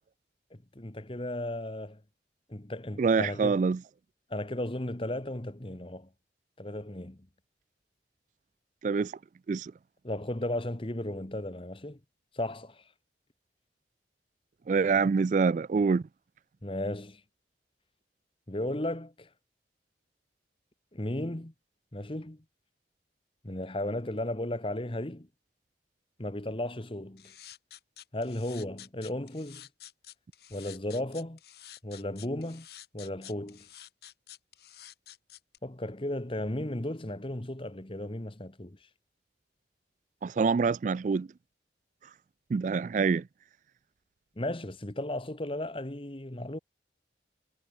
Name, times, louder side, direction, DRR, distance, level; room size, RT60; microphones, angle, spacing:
voice 1, 0.5-2.0 2.5-3.6 4.3-6.1 6.6-7.2 10.0-12.0 12.3-12.8 16.6-17.2 18.5-19.3 20.9-21.5 21.9-22.4 23.4-25.3 26.2-27.3 28.1-29.7 30.5-31.4 31.8-32.7 32.9-33.7 35.6-38.8 44.4-46.6, left 1 dB, 30° left, 1.4 m, -35 dB
voice 2, 3.0-3.8 8.8-9.1 9.5-9.7 14.7-16.0 40.2-41.3 42.5-43.2, right 5 dB, 45° right, 0.3 m, -25 dB
sound 1, 27.2-35.6, left 12 dB, 65° left, 6.3 m, -50 dB
head